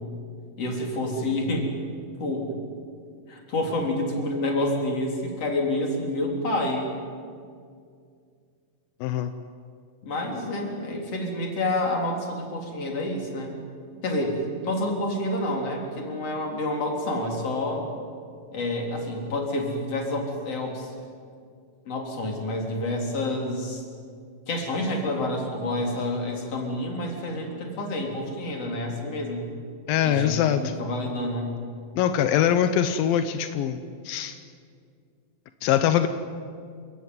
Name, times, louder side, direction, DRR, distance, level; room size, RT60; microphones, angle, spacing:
voice 1, 0.6-1.7 2.2-2.6 3.3-6.9 10.0-13.6 14.0-17.9 18.5-20.9 21.9-23.8 24.5-29.5 30.0-31.5, left 1 dB, 45° left, 1 dB, 4.7 m, -28 dB
voice 2, 9.0-9.3 29.9-30.8 32.0-34.4 35.6-36.1, left 10 dB, 85° left, 9 dB, 2.7 m, -23 dB
29.0 x 16.5 x 9.6 m, 2.2 s
omnidirectional pair, 4.0 m